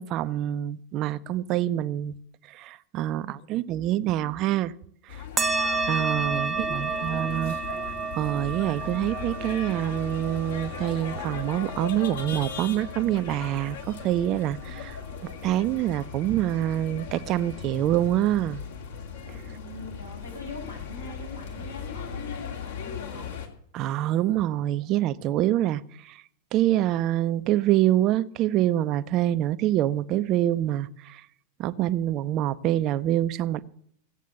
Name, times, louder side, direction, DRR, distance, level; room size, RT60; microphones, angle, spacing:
voice 1, 0.0-2.2 2.5-4.7 5.1-5.2 5.9-7.5 8.1-15.0 15.4-18.6 19.3-19.4 23.7-26.2 26.5-31.2 31.6-33.7, right 13 dB, 35° right, 0.7 m, -26 dB
sound 1, 5.1-23.5, left 7 dB, 60° left, 2.5 m, -38 dB
sound 2, 5.4-14.3, right 4 dB, 15° right, 1.1 m, -32 dB
voice 2, 6.5-7.5 19.4-23.3, left 2 dB, 85° left, 6.6 m, -42 dB
16.0 x 8.3 x 6.9 m
figure-of-eight pair, 90°, 0 cm